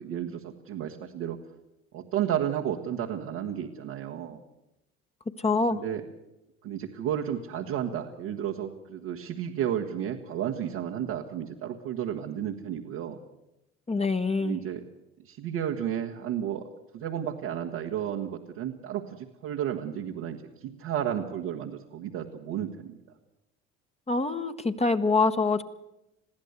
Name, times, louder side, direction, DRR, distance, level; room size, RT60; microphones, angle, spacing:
voice 1, 0.0-1.4 1.9-4.4 5.7-6.0 6.6-13.2 14.4-14.8 15.2-16.7 16.9-22.9, right 10 dB, 80° right, -3 dB, 1.7 m, -32 dB
voice 2, 5.4-5.8 13.9-14.6 24.1-25.6, left 3 dB, 20° left, 7 dB, 1.2 m, -25 dB
22.0 x 15.0 x 8.1 m, 0.92 s
supercardioid pair, 75°, 31 cm